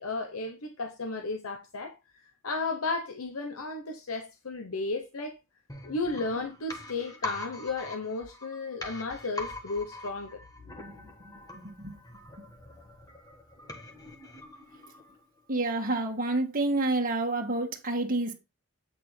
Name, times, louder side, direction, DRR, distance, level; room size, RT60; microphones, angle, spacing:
voice 1, 0.0-2.0 2.4-5.4 5.8-10.4, left 3 dB, 75° left, 0.9 m, -34 dB
sound 1, 5.7-15.4 15.7-15.8, left 2 dB, 15° left, 1.4 m, -43 dB
voice 2, 11.3-11.9 15.5-18.3, right 2 dB, 40° right, 1.7 m, -29 dB
8.5 x 6.7 x 3.3 m
head